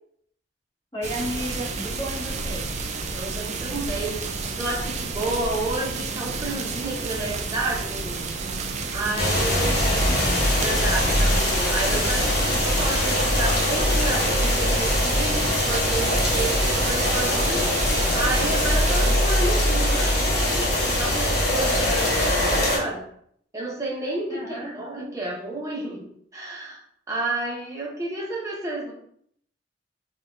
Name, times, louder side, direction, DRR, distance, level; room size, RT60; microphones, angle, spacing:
voice 1, 0.9-2.7 9.6-10.4 24.3-24.7, equal, 25° left, -7 dB, 1.3 m, -33 dB
sound 1, 1.0-19.2, right 4 dB, 40° right, 0.3 m, -31 dB
voice 2, 3.1-4.3 4.6-8.3 8.9-10.3 10.6-17.7 18.1-23.0 23.5-26.8 27.1-28.9, right 2 dB, 20° right, -3 dB, 0.8 m, -31 dB
sound 2, 9.2-22.8, left 1 dB, 60° left, 0.9 m, -22 dB
sound 3, 13.1-15.1 15.6-15.7 15.9-17.8, right 1 dB, 75° right, 0.7 m, -37 dB
4.1 x 2.2 x 2.4 m, 0.66 s
head